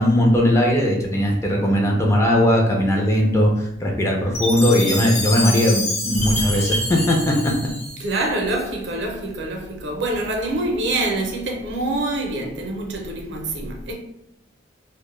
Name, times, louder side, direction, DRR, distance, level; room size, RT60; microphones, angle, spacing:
voice 1, 0.0-7.5, equal, 15° left, 0.4 m, -19 dB
Chime, 4.3-8.6, left 1 dB, 40° left, 0.7 m, -27 dB
voice 2, 6.1-6.6 8.0-13.9, right 2 dB, 65° right, 0.5 m, -26 dB
2.1 x 2.0 x 3.0 m
head